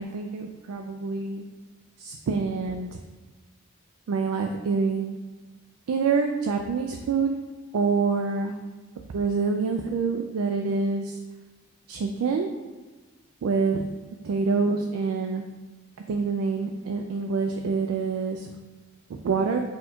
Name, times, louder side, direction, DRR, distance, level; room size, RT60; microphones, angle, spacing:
voice 1, 0.0-1.4 2.0-3.0 4.1-5.1 5.9-7.4 7.7-8.6 9.1-11.2 11.9-12.5 13.4-13.8 14.2-15.4 16.1-18.5 19.2-19.6, right 4 dB, 85° right, 4 dB, 0.3 m, -26 dB
4.2 x 2.3 x 4.5 m, 1.3 s
head